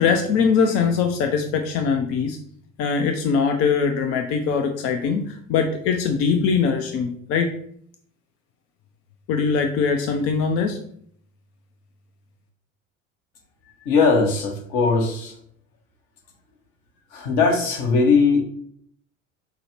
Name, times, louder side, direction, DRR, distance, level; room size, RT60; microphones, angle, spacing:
voice 1, 0.0-2.4 2.8-7.5 9.3-10.8, left 5 dB, 35° left, 5 dB, 0.4 m, -22 dB
voice 2, 13.8-15.3 17.1-18.4, left 4 dB, 55° left, 2 dB, 1.1 m, -19 dB
5.5 x 2.0 x 3.2 m, 0.64 s
figure-of-eight pair, 70°, 41 cm